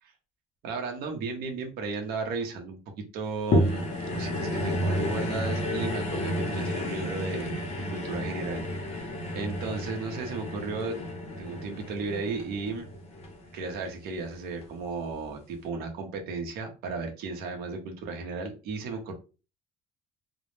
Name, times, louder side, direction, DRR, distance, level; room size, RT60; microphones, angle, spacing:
voice 1, 0.6-8.6 8.9-11.1 11.4-12.9 13.5-19.1, right 4 dB, 75° right, 3 dB, 0.6 m, -35 dB
sound 1, 3.5-14.0 14.6-14.7, equal, 40° left, 0.6 m, -31 dB
2.1 x 2.0 x 3.0 m, 0.32 s
cardioid pair, 180°, 16 cm